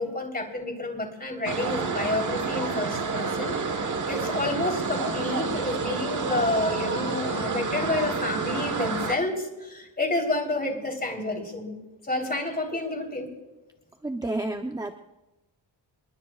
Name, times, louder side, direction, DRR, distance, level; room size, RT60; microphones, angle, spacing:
voice 1, 0.0-3.6 4.1-11.8 12.0-13.3, left 2 dB, 20° left, 2 dB, 3.8 m, -29 dB
sound 1, 1.4-9.1, right 4 dB, 40° right, 1.3 m, -29 dB
voice 2, 14.0-14.9, right 2 dB, 10° right, 5 dB, 0.7 m, -30 dB
27.5 x 21.5 x 2.4 m, 1.0 s
wide cardioid pair, 120°, 45 cm